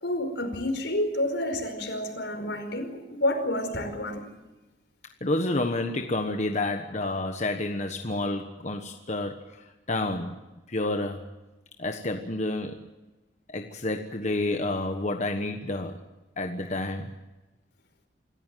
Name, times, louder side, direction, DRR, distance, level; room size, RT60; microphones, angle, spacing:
voice 1, 0.0-4.3, left 1 dB, 80° left, 5 dB, 5.1 m, -29 dB
voice 2, 5.2-10.4 10.7-11.3 11.8-12.8 13.5-16.0 16.4-17.1, left 2 dB, 40° left, 5 dB, 1.3 m, -29 dB
26.5 x 14.5 x 9.3 m, 1.1 s
head